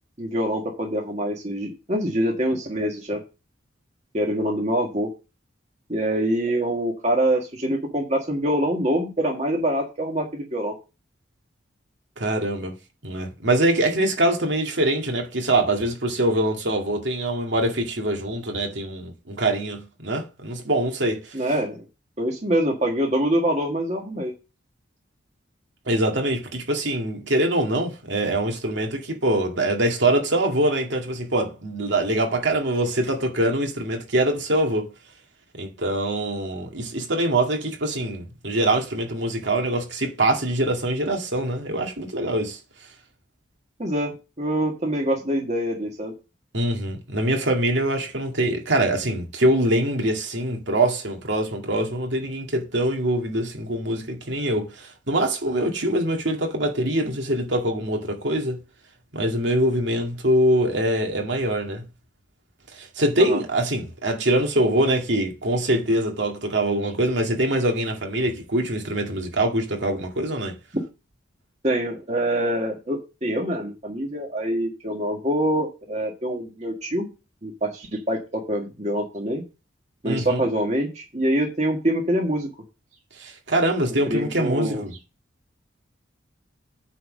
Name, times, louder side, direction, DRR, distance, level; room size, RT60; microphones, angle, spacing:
voice 1, 0.2-3.2 4.1-5.1 5.9-10.7 21.3-21.8 22.2-24.3 43.8-46.1 63.2-63.4 71.6-77.1 77.4-79.4 80.0-82.5 84.1-84.8, right 1 dB, 35° right, 1.7 m, -25 dB
voice 2, 12.2-12.7 13.0-21.4 25.9-34.9 35.5-42.6 46.5-58.6 59.1-61.8 62.7-70.6 80.1-80.4 83.2-84.9, right 1 dB, 65° right, 2.2 m, -24 dB
9.2 x 4.1 x 6.3 m
head